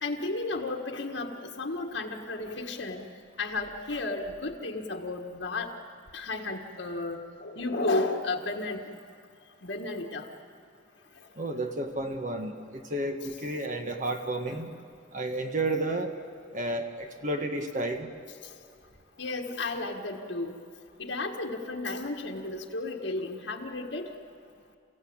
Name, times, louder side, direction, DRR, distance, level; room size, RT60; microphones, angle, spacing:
voice 1, 0.0-3.0 3.4-5.7 6.1-8.9 9.6-10.3 14.5-14.7 19.2-20.5 21.0-24.1, left 2 dB, 65° left, 1 dB, 1.7 m, -33 dB
voice 2, 11.4-14.7 15.1-16.1 16.5-18.1, right 2 dB, 40° right, 4 dB, 1.5 m, -31 dB
29.5 x 16.5 x 8.8 m, 2.2 s
head